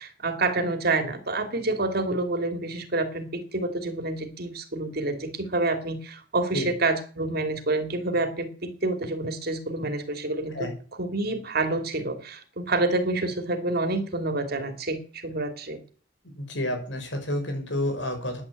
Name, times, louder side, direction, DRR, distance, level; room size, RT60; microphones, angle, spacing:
voice 1, 0.0-10.6 11.0-15.8, right 2 dB, 60° right, 7 dB, 2.7 m, -28 dB
voice 2, 16.4-18.4, left 1 dB, 85° left, 5 dB, 5.3 m, -29 dB
11.0 x 9.7 x 8.3 m, 0.41 s
head